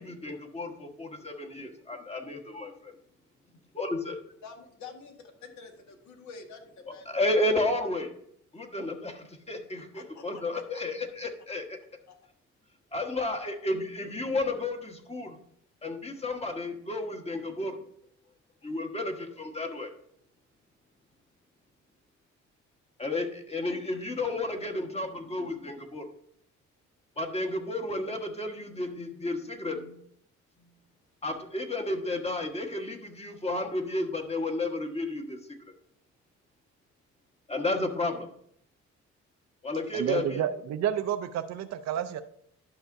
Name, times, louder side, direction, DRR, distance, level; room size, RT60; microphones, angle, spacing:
voice 1, 0.0-2.9 3.7-4.2 7.1-8.1 8.5-11.8 12.9-15.4 15.8-17.8 18.6-19.9 23.0-26.1 27.2-30.0 31.2-35.4 37.5-38.3 39.6-40.4, left 2 dB, 20° left, 4 dB, 1.3 m, -32 dB
voice 2, 4.4-7.5 9.9-10.8 12.1-12.2 13.4-13.5 33.9-34.1, left 4 dB, 70° left, 3 dB, 1.7 m, -48 dB
voice 3, 39.9-42.2, right 10 dB, 65° right, 9 dB, 0.5 m, -30 dB
11.5 x 5.7 x 2.6 m, 0.67 s
cardioid pair, 90°, 30 cm